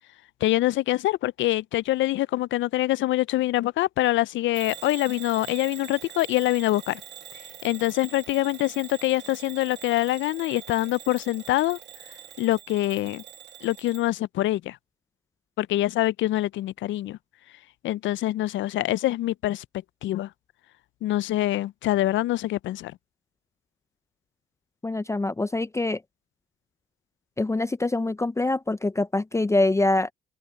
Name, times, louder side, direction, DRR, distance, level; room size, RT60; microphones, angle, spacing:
voice 1, 0.4-7.0 7.6-11.8 12.4-13.2 13.6-14.8 15.6-17.2 17.8-19.6 20.0-20.3 21.0-22.9, left 15 dB, 70° left, 0.4 m, -25 dB
Bell / Alarm, 4.5-14.1, right 10 dB, 65° right, 1.9 m, -44 dB
voice 2, 24.8-26.0 27.4-30.1, left 2 dB, 15° left, 0.5 m, -24 dB
open air
cardioid pair, 90°, 20 cm